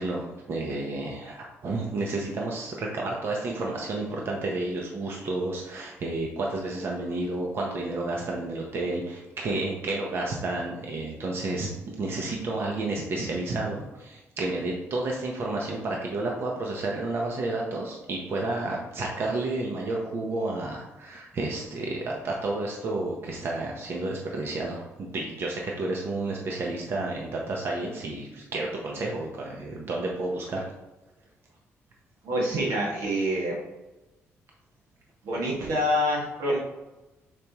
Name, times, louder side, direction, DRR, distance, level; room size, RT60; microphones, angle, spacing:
voice 1, 0.0-30.7, right 2 dB, 50° right, -1 dB, 1.1 m, -31 dB
voice 2, 32.2-33.6 35.2-36.6, equal, 85° right, -2 dB, 2.1 m, -26 dB
6.8 x 5.2 x 3.1 m, 1.1 s
cardioid pair, 120°, 5 cm